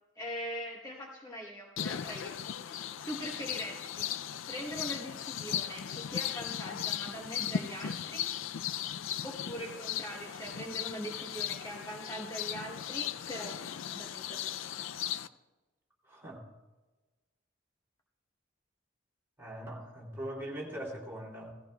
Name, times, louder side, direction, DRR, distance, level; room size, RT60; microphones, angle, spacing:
voice 1, 0.1-2.4 2.7-4.1 4.5-8.3 9.2-14.5, equal, 20° left, -1 dB, 1.0 m, -42 dB
sound 1, 1.8-15.3, left 9 dB, 85° left, 0.4 m, -37 dB
voice 2, 16.0-16.4 19.4-21.5, right 1 dB, 15° right, -2 dB, 2.9 m, -41 dB
17.5 x 14.5 x 2.3 m, 1.2 s
head